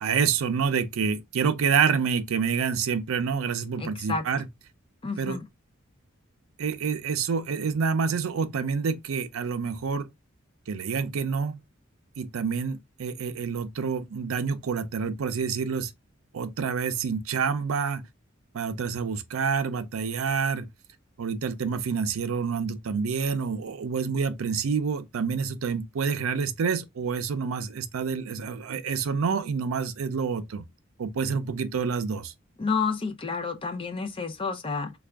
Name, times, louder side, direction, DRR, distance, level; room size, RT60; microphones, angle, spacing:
voice 1, 0.0-4.4 5.2-5.4 6.6-10.1 10.7-11.6 12.2-15.9 16.3-18.0 18.5-20.7 21.2-30.6 31.0-32.3, right 5 dB, 85° right, 0.5 m, -28 dB
voice 2, 3.8-4.2 5.0-5.5 32.6-34.9, left 4 dB, 25° left, 0.5 m, -30 dB
3.4 x 2.3 x 3.4 m
head